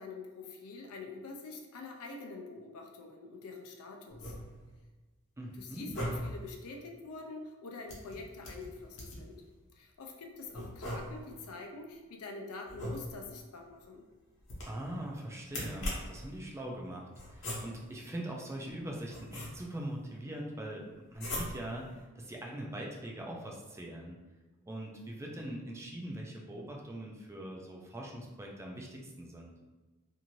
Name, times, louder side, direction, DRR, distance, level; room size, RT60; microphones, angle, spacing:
voice 1, 0.0-4.3 5.6-9.4 9.7-14.0, left 3 dB, 75° left, 2 dB, 0.5 m, -46 dB
sound 1, 4.1-4.8 5.7-6.5 7.9-9.3 10.5-11.4 12.6-13.4 14.4-15.0 15.5-16.3 17.2-18.0 18.7-19.9 21.1-21.8, left 1 dB, 55° left, 0.9 m, -40 dB
voice 2, 5.4-6.1 14.7-24.2 24.7-29.5, right 1 dB, 10° right, -1 dB, 0.3 m, -42 dB
2.6 x 2.5 x 3.0 m, 1.3 s
head